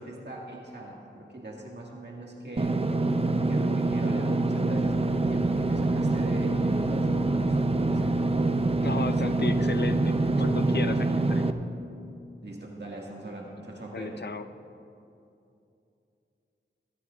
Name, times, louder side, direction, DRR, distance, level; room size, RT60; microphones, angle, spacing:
voice 1, 0.0-2.8 3.5-8.1 12.4-14.2, right 1 dB, 60° right, -2 dB, 1.9 m, -40 dB
Engine / Mechanisms, 2.6-11.5, right 2 dB, 30° right, 0.6 m, -25 dB
sound 1, 4.8-10.7, left 1 dB, 10° left, 1.3 m, -42 dB
voice 2, 8.8-11.5 13.9-14.5, left 4 dB, 60° left, 10 dB, 0.6 m, -34 dB
22.5 x 14.5 x 2.4 m, 2.7 s
wide cardioid pair, 60°, 20 cm